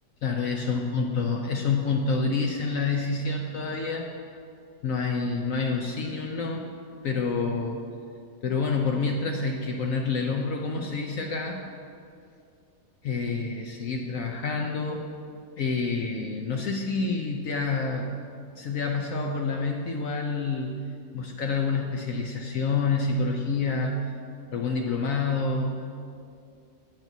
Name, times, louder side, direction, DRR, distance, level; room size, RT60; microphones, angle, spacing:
voice 1, 0.2-4.1 4.8-6.6 7.0-7.8 8.4-11.6 13.0-15.1 15.6-18.1 18.6-20.8 21.1-24.1 24.5-25.8, left 4 dB, 70° left, 1 dB, 0.8 m, -28 dB
17.5 x 6.0 x 2.7 m, 2.4 s
omnidirectional pair, 2.0 m